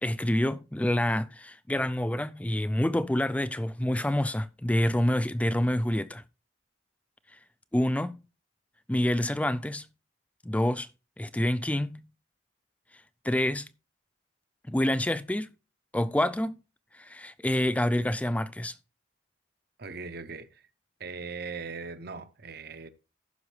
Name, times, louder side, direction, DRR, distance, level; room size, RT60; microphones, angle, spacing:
voice 1, 0.0-6.2 7.7-8.2 8.9-9.9 10.4-10.9 11.2-12.0 13.2-13.7 14.7-15.5 15.9-16.6 16.9-18.7, left 1 dB, 5° left, 0.3 m, -27 dB
voice 2, 19.8-20.6 21.0-22.9, right 4 dB, 50° right, 0.8 m, -39 dB
14.5 x 6.2 x 3.3 m
head